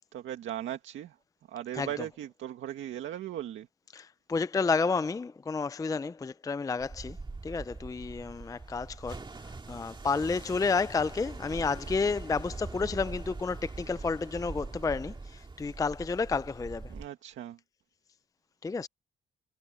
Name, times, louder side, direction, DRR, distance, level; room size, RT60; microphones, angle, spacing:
voice 1, 0.1-1.2 1.5-3.7 16.9-17.6, right 11 dB, 75° right, 1.9 m, -38 dB
voice 2, 1.7-2.0 3.9-7.2 7.4-16.9 18.6-18.9, left 4 dB, 15° left, 0.5 m, -31 dB
sound 1, 6.8-17.1, right 3 dB, 25° right, 2.0 m, -42 dB
cardioid pair, 90°, 20 cm